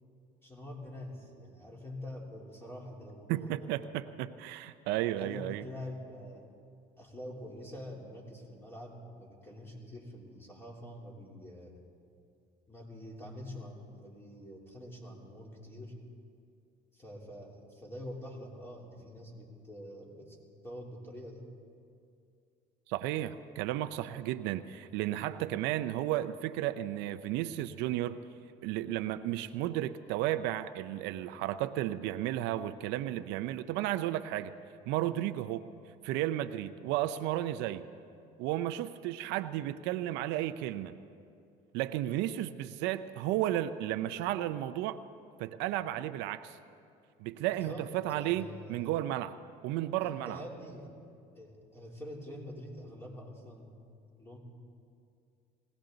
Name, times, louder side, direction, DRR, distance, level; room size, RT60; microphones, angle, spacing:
voice 1, 0.4-3.7 5.2-6.5 7.0-11.8 12.7-15.9 16.9-20.4 20.6-21.5 47.5-49.0 50.0-50.9 51.4-53.8 54.2-54.4, left 1 dB, 15° left, -2 dB, 3.4 m, -46 dB
voice 2, 3.3-5.6 22.9-28.2 28.6-34.5 34.9-35.6 36.0-37.8 38.4-40.9 41.7-45.0 45.4-46.6 47.2-49.4 49.6-50.4, right 13 dB, 80° right, 11 dB, 0.6 m, -33 dB
21.0 x 17.5 x 3.9 m, 2.4 s
cardioid pair, 100°, 18 cm